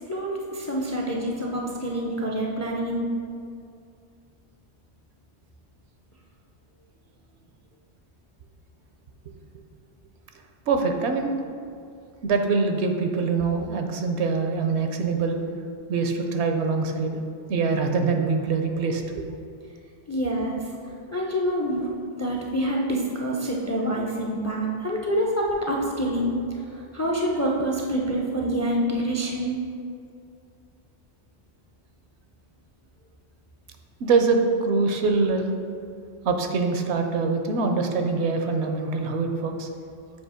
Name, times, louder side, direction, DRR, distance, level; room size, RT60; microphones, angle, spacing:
voice 1, 0.1-3.1 20.1-20.6 21.1-21.9 22.2-26.4 26.7-29.6, equal, 25° left, -2 dB, 0.4 m, -26 dB
voice 2, 10.7-11.3 12.2-15.4 15.9-17.2 17.5-19.0 34.0-35.5 36.2-39.7, right 4 dB, 80° right, 5 dB, 0.9 m, -24 dB
7.2 x 2.8 x 4.9 m, 2.4 s
omnidirectional pair, 1.1 m